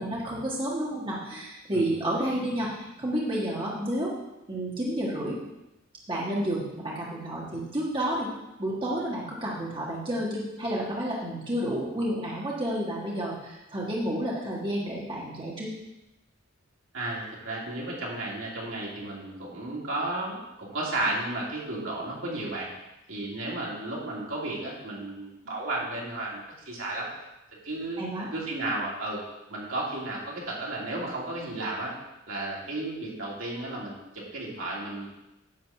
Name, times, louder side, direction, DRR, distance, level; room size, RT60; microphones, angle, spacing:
voice 1, 0.0-4.1 4.5-5.4 6.1-8.3 8.6-15.7 28.0-28.3, right 1 dB, 25° right, -5 dB, 1.7 m, -30 dB
voice 2, 16.9-22.7 23.1-27.1 27.6-28.0 28.3-29.2 29.5-31.9 32.3-35.1, right 2 dB, 70° right, -5 dB, 2.8 m, -33 dB
10.0 x 4.2 x 7.2 m, 0.96 s
head